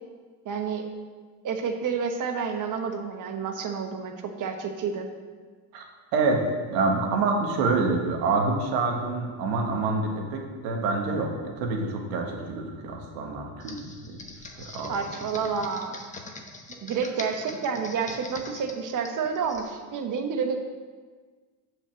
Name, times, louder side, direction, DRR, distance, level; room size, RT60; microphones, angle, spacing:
voice 1, 0.4-0.8 1.4-4.1 4.4-5.1 14.9-16.0 16.8-20.6, right 6 dB, 40° right, 5 dB, 1.2 m, -29 dB
voice 2, 6.1-14.2 14.6-15.0, right 3 dB, 80° right, 2 dB, 1.6 m, -27 dB
Computer keyboard, 13.6-19.7, left 3 dB, 15° left, 1.1 m, -42 dB
7.1 x 5.5 x 6.4 m, 1.5 s
supercardioid pair, 95°, 48 cm